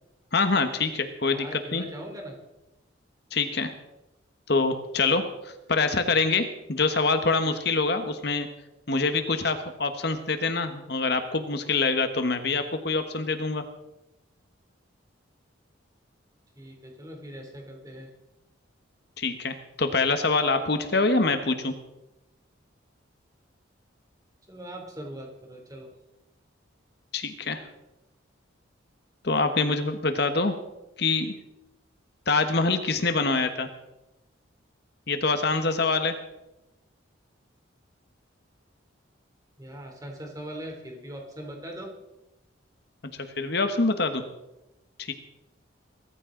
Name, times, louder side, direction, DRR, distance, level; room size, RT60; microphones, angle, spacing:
voice 1, 0.3-1.8 3.3-3.7 4.5-8.5 8.9-13.6 19.2-21.7 27.1-27.6 29.2-30.5 31.0-31.3 32.3-33.7 35.1-36.1 43.4-44.2 45.0-45.1, left 3 dB, 55° left, 8 dB, 1.3 m, -25 dB
voice 2, 1.3-2.4 16.6-18.1 24.5-25.9 39.6-41.9, equal, 15° right, 1 dB, 3.1 m, -40 dB
22.5 x 14.0 x 3.9 m, 0.94 s
head